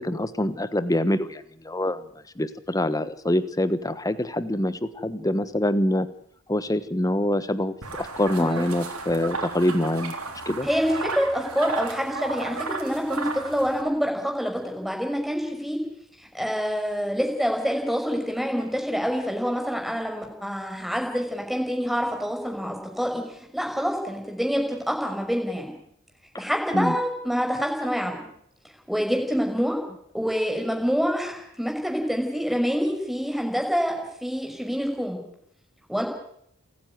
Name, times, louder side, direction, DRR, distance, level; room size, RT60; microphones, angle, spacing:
voice 1, 0.0-2.1 2.4-6.1 6.5-10.1 10.5-10.7 26.7-27.0, left 1 dB, 15° left, 13 dB, 1.1 m, -25 dB
sound 1, 7.8-13.8, right 3 dB, 80° right, 3.6 m, -34 dB
voice 2, 8.3-8.7 10.6-15.8 16.3-25.7 26.4-28.2 28.9-29.8 30.1-33.9 34.2-35.2 35.9-36.0, equal, ahead, 2 dB, 5.6 m, -26 dB
28.0 x 9.8 x 9.5 m, 0.70 s
head